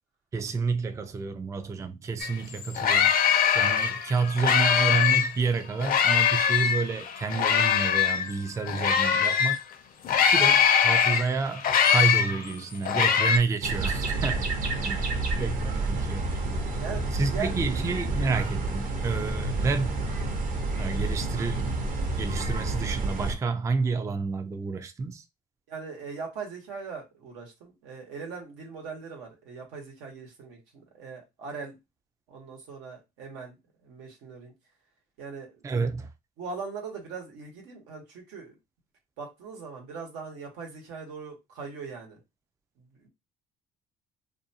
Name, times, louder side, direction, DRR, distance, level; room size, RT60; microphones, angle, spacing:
voice 1, 0.3-3.1 3.5-9.6 10.3-14.4 14.8-15.0 15.3-16.3 17.1-20.0 20.8-21.8 22.2-25.2 35.6-36.1, right 4 dB, 15° right, 0.3 m, -29 dB
sound 1, 2.2-2.3 2.6-5.4 5.8-9.6 10.0-13.4, left 8 dB, 50° left, 0.5 m, -22 dB
sound 2, 13.6-23.3, right 2 dB, 50° right, 0.8 m, -29 dB
voice 2, 14.8-15.8 16.8-17.8 19.4-19.5 25.7-31.8 32.3-34.5 35.2-35.6 36.4-38.5 39.2-42.2 42.8-43.1, right 5 dB, 85° right, 1.1 m, -40 dB
2.5 x 2.3 x 2.7 m
cardioid pair, 95°, 18 cm